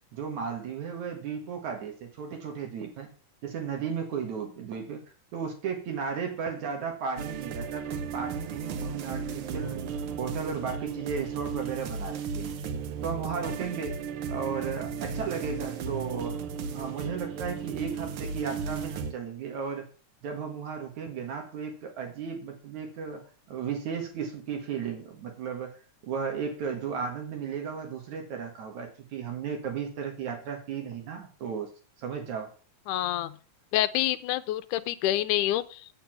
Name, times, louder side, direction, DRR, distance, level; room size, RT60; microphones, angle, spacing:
voice 1, 0.1-3.1 3.4-5.0 5.3-9.8 10.2-12.5 13.0-14.0 14.3-16.4 16.7-19.9 20.2-23.2 23.5-25.8 26.0-32.5, right 6 dB, 65° right, 4 dB, 3.1 m, -35 dB
sound 1, 7.2-19.1, right 6 dB, 80° right, 1.2 m, -35 dB
voice 2, 32.9-33.4 33.7-35.9, left 13 dB, 80° left, 11 dB, 2.2 m, -27 dB
8.7 x 6.9 x 5.9 m, 0.38 s
omnidirectional pair, 3.7 m